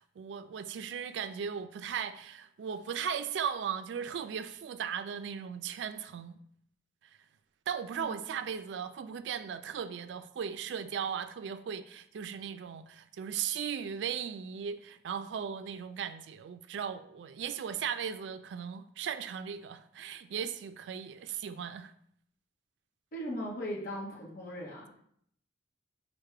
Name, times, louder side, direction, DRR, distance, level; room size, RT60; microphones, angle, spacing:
voice 1, 0.0-6.4 7.7-21.9, right 7 dB, 70° right, 0.3 m, -37 dB
voice 2, 23.1-24.9, equal, 50° left, 0.9 m, -38 dB
4.5 x 2.1 x 4.7 m
head